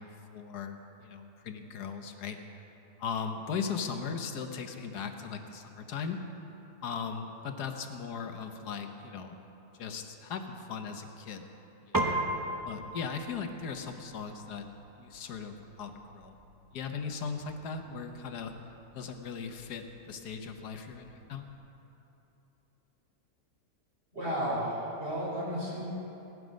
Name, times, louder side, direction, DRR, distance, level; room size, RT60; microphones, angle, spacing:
voice 1, 0.0-2.4 3.0-6.2 6.8-9.4 9.7-11.4 11.8-12.1 12.6-14.7 15.0-16.4 16.7-18.5 18.9-21.5, left 6 dB, 70° left, 6 dB, 1.5 m, -38 dB
Piano, 11.9-21.5, right 1 dB, 20° right, 0.6 m, -39 dB
voice 2, 24.1-25.8, equal, 35° right, -5 dB, 4.6 m, -33 dB
17.0 x 11.5 x 5.2 m, 3.0 s
omnidirectional pair, 1.8 m